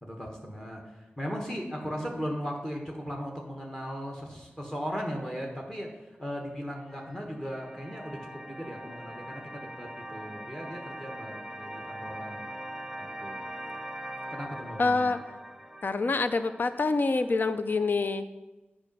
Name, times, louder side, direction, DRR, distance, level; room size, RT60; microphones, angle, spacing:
voice 1, 0.0-0.8 1.2-5.9 6.2-12.5 13.0-13.4 14.3-15.1, equal, 15° left, 1 dB, 1.3 m, -37 dB
sound 1, 6.9-17.9, right 1 dB, 5° right, 0.6 m, -42 dB
voice 2, 14.8-15.2 15.8-18.2, left 3 dB, 55° left, 11 dB, 0.5 m, -26 dB
8.2 x 4.9 x 5.3 m, 1.1 s
wide cardioid pair, 70°, 4 cm